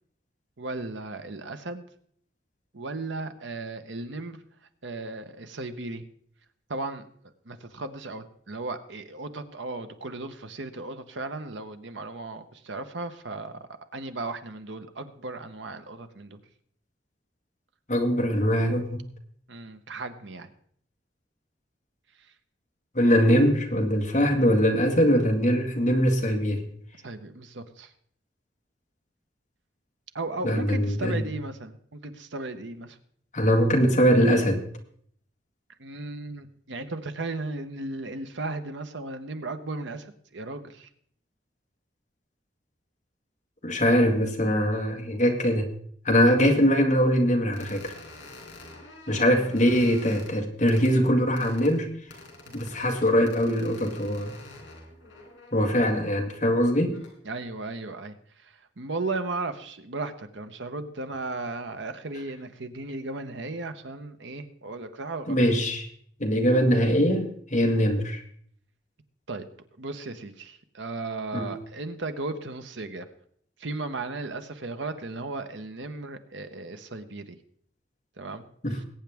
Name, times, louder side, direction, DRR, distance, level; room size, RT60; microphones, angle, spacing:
voice 1, 0.6-1.8 2.7-4.4 4.8-6.1 6.7-7.0 7.4-16.4 19.5-20.5 27.0-27.9 30.1-33.0 35.8-40.9 49.1-49.4 52.5-52.6 55.6-55.7 57.2-58.2 58.4-65.4 69.3-69.5 69.8-73.1 73.6-77.4 78.2-78.4 78.7-78.8, right 2 dB, 80° right, 9 dB, 1.0 m, -36 dB
voice 2, 17.9-19.0 22.9-26.6 30.4-31.3 33.3-34.6 43.6-45.7 46.0-47.9 49.1-51.9 52.5-54.4 55.5-57.0 65.3-65.9 66.2-68.2 71.3-71.5 78.6-78.8, equal, 40° left, 2 dB, 1.8 m, -22 dB
sound 1, 47.5-50.3 50.7-50.9 51.4-51.7 52.1-56.0 56.8-57.1, left 2 dB, 75° left, 4.0 m, -47 dB
21.0 x 9.1 x 3.5 m, 0.62 s
head